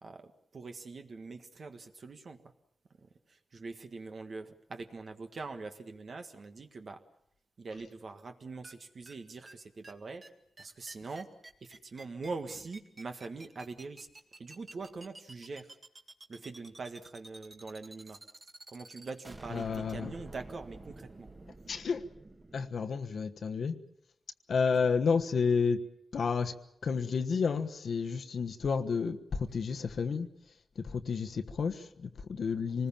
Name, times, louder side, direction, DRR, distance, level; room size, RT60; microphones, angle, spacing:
voice 1, 0.0-2.4 3.3-7.0 7.6-10.3 10.6-11.3 11.6-14.1 14.4-15.8 16.3-18.2 18.7-21.3, right 3 dB, 50° right, 6 dB, 1.6 m, -43 dB
sound 1, 8.6-8.7 9.1-9.2 9.5-9.6 9.8-9.9 10.2-10.3 10.6-22.7, right 2 dB, 30° right, 2.1 m, -50 dB
voice 2, 19.5-20.1 21.7-22.0 22.5-23.8 24.5-25.8 26.1-26.5 26.8-30.3 30.7-32.9, left 5 dB, 65° left, 7 dB, 1.3 m, -31 dB
26.0 x 20.0 x 7.3 m, 0.74 s
wide cardioid pair, 120°, 0 cm